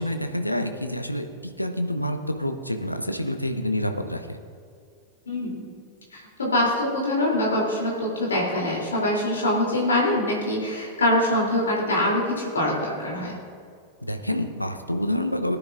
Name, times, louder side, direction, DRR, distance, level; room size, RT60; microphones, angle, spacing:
voice 1, 0.0-4.4 14.0-15.6, left 1 dB, 90° left, 6 dB, 0.8 m, -28 dB
voice 2, 5.3-5.7 6.1-13.3, left 1 dB, 70° left, -3 dB, 3.0 m, -24 dB
18.5 x 10.0 x 2.5 m, 2.3 s
figure-of-eight pair, 90°, 0 cm